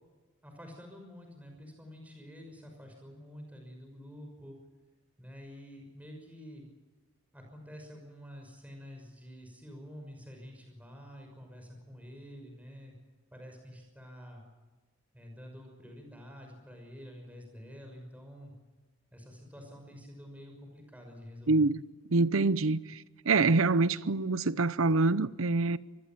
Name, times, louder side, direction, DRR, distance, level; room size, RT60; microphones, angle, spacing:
voice 1, 0.4-4.6 5.2-6.7 7.3-12.9 13.3-14.4 15.1-18.5 19.1-21.7, equal, 5° right, 6.0 m, -48 dB
voice 2, 21.5-21.8 22.1-23.0 23.3-25.8, right 3 dB, 85° right, 0.7 m, -25 dB
25.0 x 21.0 x 7.4 m
head